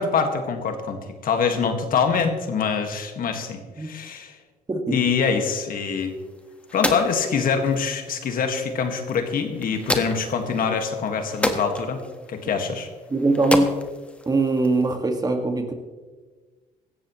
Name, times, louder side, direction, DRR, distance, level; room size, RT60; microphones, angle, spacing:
voice 1, 0.0-4.3 4.9-6.2 6.7-12.0 12.3-12.9, left 6 dB, 60° left, 5 dB, 1.8 m, -24 dB
sound 1, 6.0-15.0, left 1 dB, 5° left, 1.4 m, -32 dB
voice 2, 13.1-13.7 14.2-15.7, right 2 dB, 25° right, 4 dB, 1.8 m, -21 dB
17.0 x 14.0 x 3.1 m, 1.3 s
cardioid pair, 95°, 17 cm